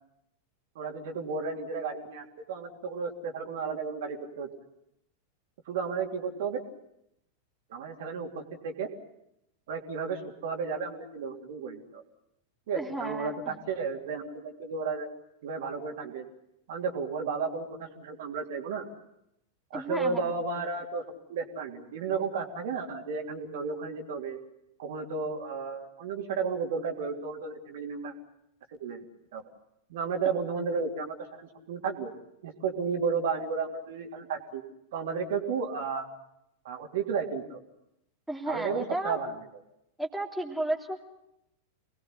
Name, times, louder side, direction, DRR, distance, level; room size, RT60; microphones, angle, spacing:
voice 1, 0.7-4.5 5.7-6.6 7.7-8.9 9.7-12.0 12.7-15.1 15.4-16.3 16.7-18.9 19.7-21.0 21.3-24.4 24.8-28.1 28.8-29.0 29.3-29.4 29.9-32.1 32.4-34.6 34.9-36.1 36.6-37.6 38.5-39.3, right 5 dB, 55° right, 3 dB, 3.2 m, -33 dB
voice 2, 12.8-13.6 19.7-20.2 38.3-39.2 40.0-41.0, right 1 dB, ahead, 0 dB, 3.1 m, -33 dB
27.5 x 20.5 x 8.1 m, 0.82 s
figure-of-eight pair, 90°, 0 cm